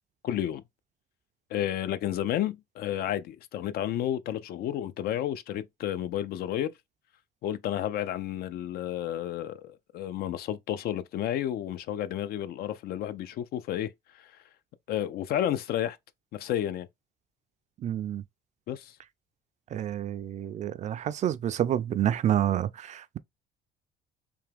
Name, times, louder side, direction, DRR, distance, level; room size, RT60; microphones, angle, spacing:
voice 1, 0.2-0.6 1.5-6.7 7.4-13.9 14.2-14.3 14.9-16.0 16.3-16.9 18.7-18.9, left 11 dB, 65° left, 0.4 m, -31 dB
voice 2, 17.8-18.2 19.7-23.2, right 11 dB, 45° right, 0.4 m, -28 dB
3.5 x 2.9 x 3.4 m
cardioid pair, 110°, 17 cm